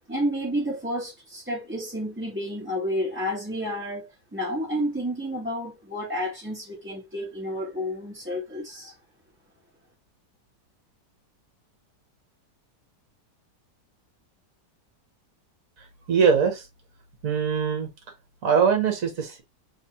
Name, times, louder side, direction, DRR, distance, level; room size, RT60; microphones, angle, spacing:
voice 1, 0.1-9.0, equal, 10° right, 1.2 m, -30 dB
voice 2, 16.1-16.6 17.2-17.9 18.4-19.4, right 6 dB, 55° right, 1.7 m, -22 dB
3.6 x 3.3 x 2.8 m
omnidirectional pair, 1.8 m